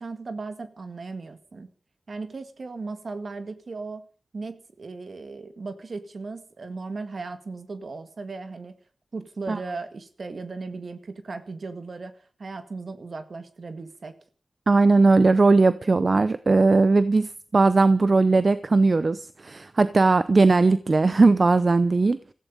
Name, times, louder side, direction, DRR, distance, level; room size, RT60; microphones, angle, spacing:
voice 1, 0.0-1.7 2.1-4.0 4.3-8.7 9.1-12.1 12.4-14.1, right 3 dB, 70° right, 2.0 m, -36 dB
voice 2, 14.7-22.2, right 3 dB, 55° right, 0.7 m, -19 dB
18.0 x 15.0 x 5.3 m
wide cardioid pair, 55°, 0 cm